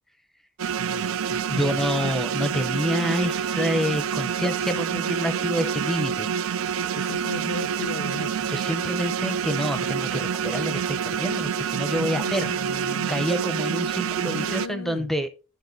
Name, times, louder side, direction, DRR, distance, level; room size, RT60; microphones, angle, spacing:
sound 1, 0.6-14.7, right 7 dB, 70° right, 0.4 m, -27 dB
voice 1, 0.8-1.8 6.9-8.3 12.0-13.2 14.2-15.1, left 4 dB, 70° left, 0.5 m, -37 dB
voice 2, 1.5-6.3 8.5-12.5 13.1-15.3, equal, ahead, 0.6 m, -28 dB
12.0 x 5.8 x 3.9 m
head